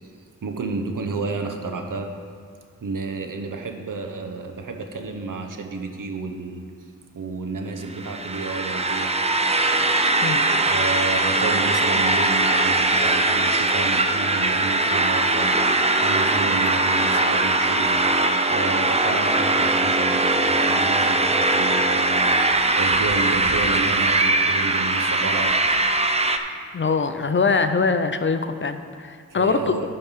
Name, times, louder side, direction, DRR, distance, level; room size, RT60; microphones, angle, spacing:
voice 1, 0.4-2.1 2.8-6.6 7.1-9.1 10.2-18.0 18.5-25.5 29.3-29.9, right 4 dB, 80° right, 4 dB, 1.0 m, -31 dB
sound 1, 7.9-26.4, right 2 dB, 20° right, 0.5 m, -21 dB
voice 2, 26.7-29.9, left 4 dB, 40° left, 10 dB, 0.5 m, -23 dB
10.5 x 5.4 x 5.7 m, 2.1 s
wide cardioid pair, 100°, 32 cm